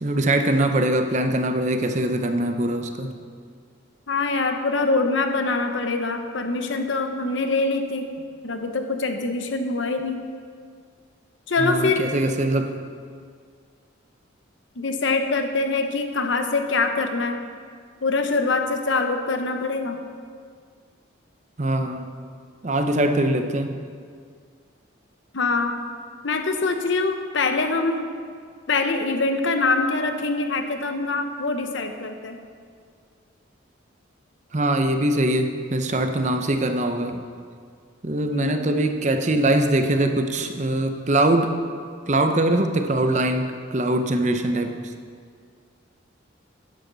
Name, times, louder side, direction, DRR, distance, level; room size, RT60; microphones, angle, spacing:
voice 1, 0.0-3.1 11.6-12.7 21.6-22.1 22.6-23.8 34.5-37.2 38.0-41.5 42.1-44.8, right 1 dB, 35° right, 6 dB, 0.6 m, -22 dB
voice 2, 4.1-8.1 8.4-10.2 11.5-12.1 14.8-17.4 18.0-20.0 25.3-25.8 26.2-28.1 28.7-32.4 38.3-38.8, left 3 dB, 70° left, 6 dB, 0.9 m, -24 dB
12.0 x 10.5 x 4.0 m, 2.1 s
head